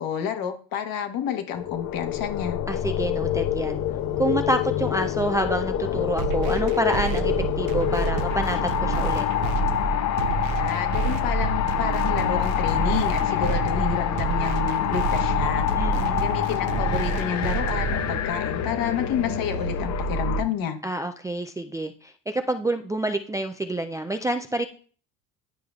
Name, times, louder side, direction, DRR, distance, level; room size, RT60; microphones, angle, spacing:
voice 1, 0.0-2.6 10.6-15.7 16.2-20.8, left 8 dB, 65° left, 1.3 m, -29 dB
sound 1, 1.5-20.4, left 9 dB, 45° left, 0.7 m, -26 dB
voice 2, 2.7-3.8 4.2-9.3 15.7-16.3 20.8-24.7, right 1 dB, 10° right, 0.3 m, -28 dB
sound 2, 3.2-19.8, left 2 dB, 80° left, 1.9 m, -39 dB
sound 3, 6.2-18.2, right 8 dB, 80° right, 0.5 m, -30 dB
10.5 x 4.8 x 2.3 m
supercardioid pair, 100°, 38 cm